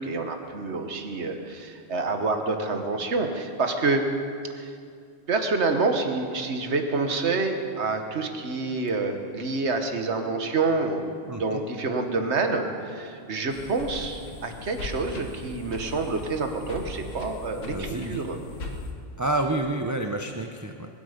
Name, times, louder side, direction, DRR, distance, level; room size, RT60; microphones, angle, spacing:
voice 1, 0.0-4.1 4.6-4.7 5.3-11.0 11.4-18.4, right 3 dB, 65° right, 5 dB, 1.6 m, -27 dB
voice 2, 11.3-11.6 17.7-18.2 19.2-20.9, right 2 dB, 20° right, 4 dB, 0.6 m, -29 dB
sound 1, 13.5-18.9, left 3 dB, 85° left, 1.7 m, -39 dB
21.5 x 12.0 x 5.1 m, 2.3 s
omnidirectional pair, 1.3 m